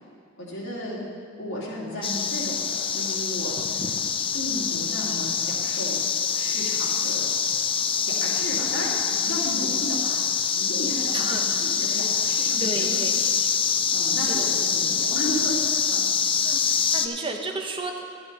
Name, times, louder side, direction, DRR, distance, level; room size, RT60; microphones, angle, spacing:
voice 1, 0.4-1.0 1.4-3.9 4.3-6.0 6.3-7.2 7.8-12.9 13.9-16.0, equal, 80° left, -6 dB, 3.0 m, -34 dB
sound 1, 2.0-17.1, left 6 dB, 25° left, 0.4 m, -25 dB
voice 2, 11.1-12.1 12.6-13.1 14.2-14.5 16.4-18.0, right 3 dB, 25° right, 3 dB, 0.8 m, -33 dB
12.0 x 9.6 x 4.1 m, 2.3 s
head